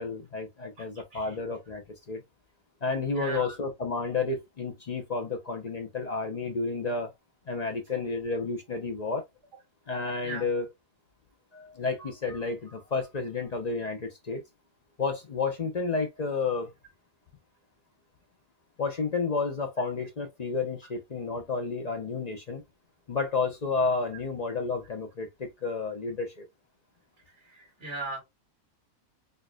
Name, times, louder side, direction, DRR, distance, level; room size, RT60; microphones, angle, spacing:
voice 1, 0.0-2.2 2.8-7.1 7.5-9.2 9.9-10.7 11.5-14.4 15.0-16.7 18.8-22.6 23.1-26.5, left 4 dB, 45° left, 0.5 m, -31 dB
voice 2, 0.8-1.3 3.1-3.6 10.2-10.5 27.4-28.2, right 3 dB, 45° right, 1.6 m, -38 dB
4.4 x 2.5 x 2.2 m
omnidirectional pair, 1.5 m